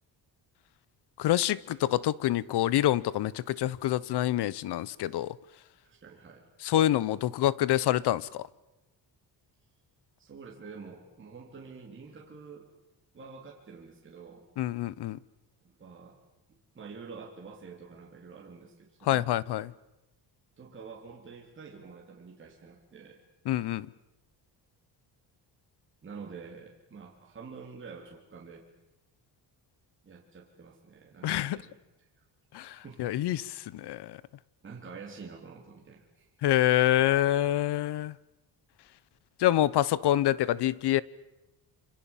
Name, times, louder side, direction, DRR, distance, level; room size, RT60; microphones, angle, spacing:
voice 1, 1.2-5.4 6.6-8.4 14.6-15.2 19.1-19.7 23.5-23.9 31.2-31.6 32.5-34.2 36.4-38.1 39.4-41.0, left 13 dB, 75° left, 21 dB, 1.0 m, -26 dB
voice 2, 5.8-6.5 10.2-12.7 13.1-14.5 15.6-16.2 16.8-19.3 20.6-23.2 26.0-28.7 30.0-31.8 32.5-33.2 34.6-36.3, right 5 dB, 30° right, -2 dB, 3.6 m, -47 dB
27.0 x 26.5 x 7.4 m, 0.95 s
cardioid pair, 165°, 40 cm